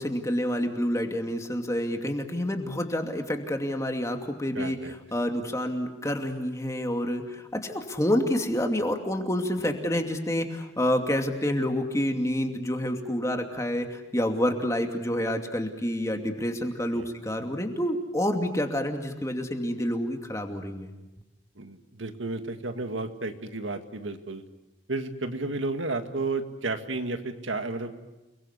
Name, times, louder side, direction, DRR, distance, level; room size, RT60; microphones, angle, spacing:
voice 1, 0.0-20.9, equal, 15° left, 4 dB, 2.5 m, -28 dB
voice 2, 4.5-4.9 16.9-17.1 21.6-24.4 24.9-28.1, right 3 dB, 90° right, 7 dB, 2.1 m, -32 dB
29.5 x 21.5 x 8.2 m, 1.0 s
head